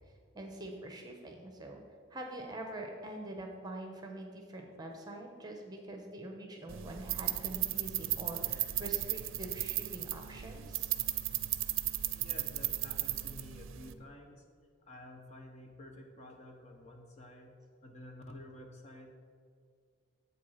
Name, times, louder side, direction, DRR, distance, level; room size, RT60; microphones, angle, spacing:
voice 1, 0.3-1.8 2.1-10.9, right 1 dB, 20° right, 2 dB, 1.0 m, -44 dB
sound 1, 6.7-13.9, right 15 dB, 75° right, 0.5 m, -35 dB
voice 2, 12.0-14.4 14.8-19.1, left 1 dB, 35° left, 2 dB, 1.1 m, -51 dB
8.4 x 7.6 x 5.7 m, 2.1 s
head